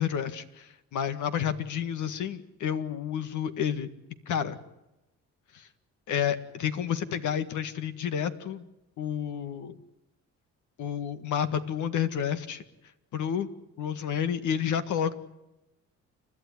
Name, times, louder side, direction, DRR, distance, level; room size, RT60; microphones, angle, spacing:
voice 1, 0.0-3.9 4.3-4.6 5.5-5.7 6.1-8.7 9.0-9.8 10.8-12.6 13.1-13.5 13.8-15.1, left 8 dB, 75° left, 10 dB, 1.9 m, -30 dB
30.0 x 12.5 x 9.8 m, 0.95 s
cardioid pair, 90°, 30 cm